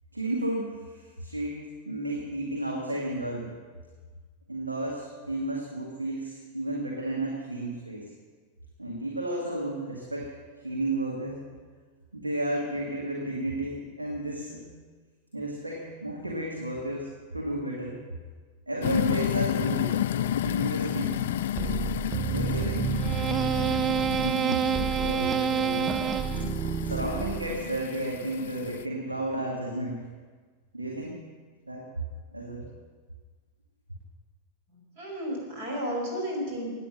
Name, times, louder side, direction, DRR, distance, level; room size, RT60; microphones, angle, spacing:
voice 1, 0.1-1.6 1.9-3.5 4.5-8.1 8.8-10.4 10.6-11.4 12.1-14.7 15.3-18.0 18.7-21.3 22.3-22.9 24.1-26.0 26.9-30.0 30.7-31.2 31.7-31.8 32.3-32.7, right 1 dB, 80° right, -2 dB, 2.0 m, -32 dB
sound 1, 18.8-28.8, left 11 dB, 60° left, 0.4 m, -31 dB
sound 2, 21.6-27.8, right 8 dB, 25° right, 0.4 m, -28 dB
voice 2, 34.7-36.7, equal, 50° right, -1 dB, 5.7 m, -33 dB
16.5 x 9.7 x 6.5 m, 1.5 s
figure-of-eight pair, 90°, 0 cm